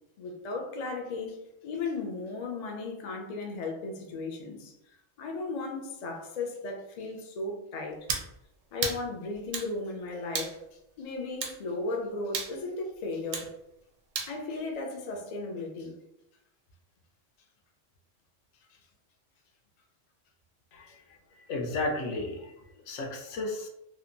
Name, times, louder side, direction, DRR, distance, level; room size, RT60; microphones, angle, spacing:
voice 1, 0.2-1.4 1.6-8.1 8.7-10.6 11.0-13.5 14.3-16.0, left 3 dB, 60° left, 0.4 m, -36 dB
sound 1, 8.1-8.3 8.8-9.0 9.5-9.7 10.3-10.6 11.4-11.6 12.3-12.5 13.3-13.5 14.2-14.3, right 5 dB, 90° right, 1.0 m, -32 dB
voice 2, 21.5-22.5 22.9-23.7, left 2 dB, 75° left, 0.9 m, -33 dB
2.9 x 2.1 x 2.5 m
omnidirectional pair, 1.3 m